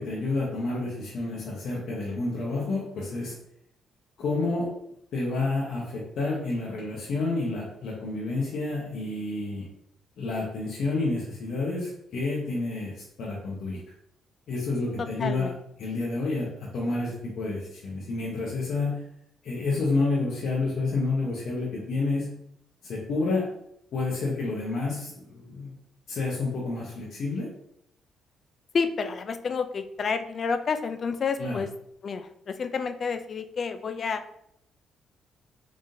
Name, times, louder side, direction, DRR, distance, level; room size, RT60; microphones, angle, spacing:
voice 1, 0.0-3.3 4.2-4.7 5.1-9.7 10.2-13.8 14.5-15.5 15.8-19.0 19.4-22.3 22.8-23.5 23.9-25.7 26.1-27.5 31.4-31.6, left 3 dB, 70° left, -5 dB, 0.9 m, -29 dB
voice 2, 15.0-15.5 28.7-31.7 32.0-34.2, left 5 dB, 50° left, 9 dB, 0.3 m, -29 dB
3.7 x 3.6 x 2.7 m, 0.73 s
cardioid pair, 90°, 0 cm